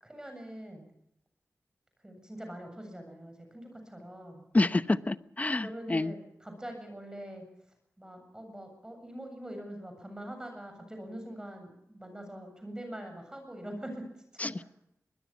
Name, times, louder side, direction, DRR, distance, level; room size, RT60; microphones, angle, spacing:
voice 1, 0.0-0.8 2.0-4.4 5.6-7.4 8.0-14.7, right 1 dB, 15° right, 5 dB, 7.7 m, -43 dB
voice 2, 4.5-6.1 14.4-14.6, left 2 dB, 25° left, 13 dB, 1.0 m, -28 dB
23.5 x 21.0 x 7.2 m, 0.79 s
wide cardioid pair, 95°, 6 cm